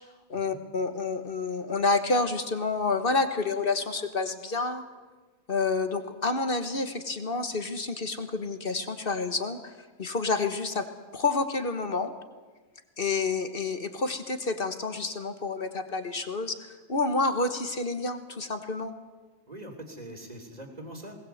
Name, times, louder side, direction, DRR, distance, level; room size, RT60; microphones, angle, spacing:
voice 1, 0.3-4.8 5.5-9.7 10.0-10.9 11.1-12.1 13.0-18.9, left 3 dB, 40° left, 8 dB, 1.5 m, -29 dB
voice 2, 19.5-21.2, right 1 dB, 30° right, 4 dB, 3.0 m, -43 dB
20.5 x 19.0 x 7.9 m, 1.3 s
omnidirectional pair, 1.5 m